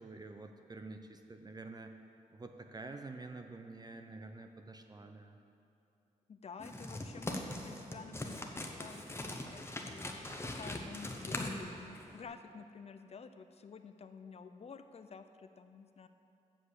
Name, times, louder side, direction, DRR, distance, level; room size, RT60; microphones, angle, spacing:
voice 1, 0.0-1.9 2.3-5.4, right 3 dB, 30° right, 6 dB, 0.6 m, -48 dB
voice 2, 6.3-10.0 10.4-11.9 12.1-16.1, left 5 dB, 45° left, 9 dB, 0.5 m, -51 dB
sound 1, 6.6-12.2, left 1 dB, 20° left, 0.9 m, -41 dB
7.6 x 6.3 x 8.0 m, 2.7 s
cardioid pair, 85°, 14 cm